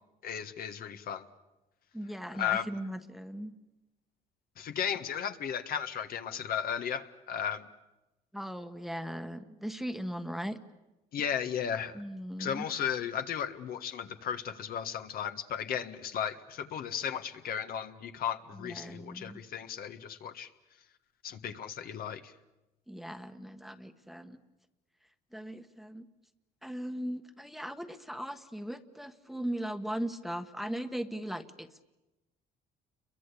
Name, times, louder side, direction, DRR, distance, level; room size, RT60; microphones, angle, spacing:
voice 1, 0.2-1.3 2.4-2.7 4.6-7.7 11.1-11.9 12.4-20.5 21.2-22.3, left 8 dB, 60° left, 8 dB, 1.6 m, -35 dB
voice 2, 1.9-3.5 8.3-10.6 11.9-12.7 18.5-19.4 22.9-24.4 25.3-26.1 26.6-31.9, equal, ahead, 9 dB, 1.3 m, -38 dB
29.5 x 23.0 x 8.4 m, 1.0 s
cardioid pair, 110°, 17 cm